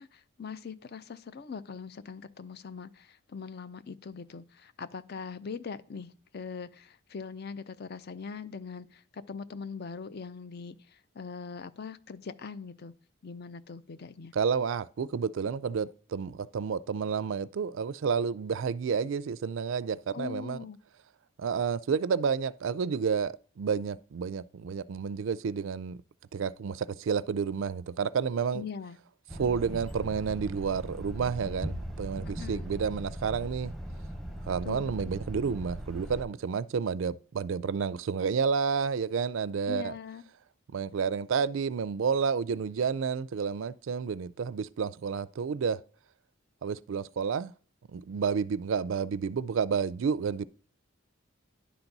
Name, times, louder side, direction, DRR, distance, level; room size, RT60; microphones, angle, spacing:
voice 1, 0.0-12.9 13.2-14.3 20.1-20.8 28.5-29.0 32.4-32.7 34.6-35.1 39.7-40.2, left 5 dB, 50° left, 0.5 m, -41 dB
voice 2, 14.3-20.6 21.4-26.0 26.3-28.6 29.3-33.7 34.5-39.9 40.7-45.8 46.6-47.5 47.9-50.5, right 6 dB, 65° right, 0.4 m, -30 dB
sound 1, 29.3-36.3, equal, ahead, 0.8 m, -39 dB
10.5 x 4.0 x 5.9 m
head